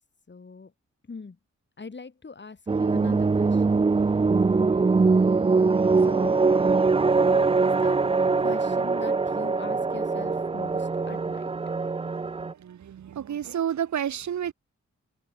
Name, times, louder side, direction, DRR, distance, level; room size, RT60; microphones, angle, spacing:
voice 1, 0.3-0.7 1.1-1.4 1.8-3.9 6.0-6.4 7.0-8.1 8.4-11.5, left 4 dB, 40° left, 3.2 m, -41 dB
sound 1, 2.7-12.5, right 4 dB, 20° right, 0.5 m, -22 dB
voice 2, 12.6-14.5, right 9 dB, 75° right, 1.1 m, -30 dB
open air
wide cardioid pair, 85°, 29 cm